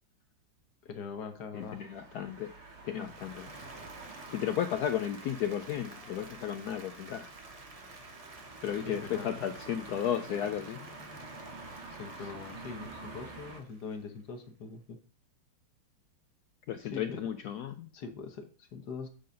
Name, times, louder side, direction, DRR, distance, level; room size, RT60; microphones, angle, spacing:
voice 1, 0.8-1.8 2.9-3.1 8.8-9.3 11.9-15.0 16.8-17.3 17.9-19.1, left 5 dB, 55° left, 6 dB, 1.5 m, -42 dB
voice 2, 1.5-2.5 2.8-3.5 4.3-7.3 8.6-10.8 16.7-17.9, left 10 dB, 80° left, 9 dB, 0.9 m, -34 dB
sound 1, 1.5-13.6, right 2 dB, 55° right, 2.1 m, -48 dB
Applause, 2.9-14.3, right 3 dB, 75° right, 0.3 m, -53 dB
8.5 x 3.8 x 5.2 m, 0.39 s
omnidirectional pair, 2.2 m